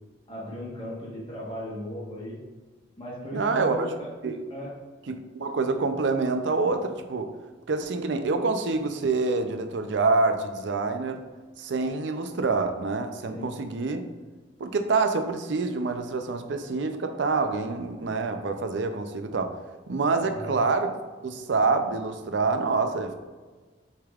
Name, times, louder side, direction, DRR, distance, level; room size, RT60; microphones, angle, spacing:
voice 1, 0.3-2.4 3.0-4.1 4.5-4.7 13.3-13.5 20.2-20.5, left 1 dB, 25° left, -7 dB, 1.2 m, -36 dB
voice 2, 3.3-3.9 4.2-4.4 5.1-7.3 7.7-11.2 11.6-14.0 14.6-19.5 19.9-20.9 21.2-23.1, right 4 dB, 70° right, 7 dB, 0.5 m, -26 dB
6.4 x 3.4 x 2.4 m, 1.3 s
head